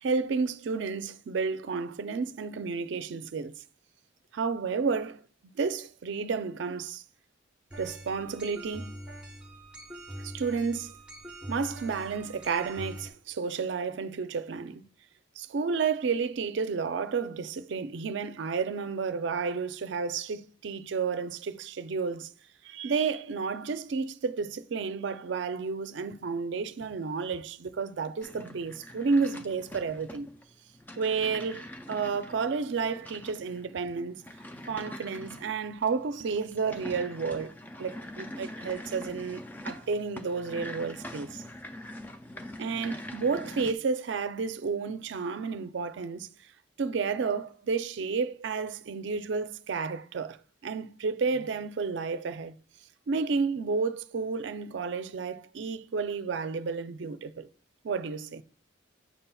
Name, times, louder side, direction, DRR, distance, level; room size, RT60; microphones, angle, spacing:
voice 1, 0.0-3.6 4.3-5.2 5.5-7.0 7.8-9.0 10.2-11.0 11.5-14.9 15.4-22.3 22.6-30.3 31.0-34.2 34.7-37.5 37.8-41.4 42.6-46.3 46.8-50.4 50.6-52.5 53.1-57.5 57.8-58.4, right 5 dB, 70° right, 0.4 m, -31 dB
sound 1, 7.7-13.1, equal, 5° right, 0.8 m, -43 dB
sound 2, 28.2-43.7, left 1 dB, 10° left, 0.3 m, -44 dB
8.2 x 5.6 x 2.2 m
head